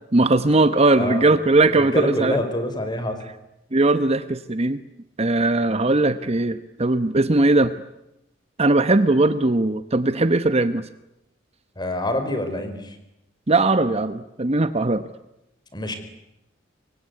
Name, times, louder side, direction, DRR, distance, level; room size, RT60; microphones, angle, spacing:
voice 1, 0.1-2.4 3.7-4.8 5.2-7.7 8.6-10.8 13.5-15.0, right 2 dB, 35° right, 12 dB, 1.0 m, -19 dB
voice 2, 1.0-1.3 1.7-3.2 11.8-13.0 15.7-15.9, left 1 dB, 25° left, 8 dB, 4.6 m, -26 dB
25.5 x 23.5 x 9.6 m, 0.88 s
head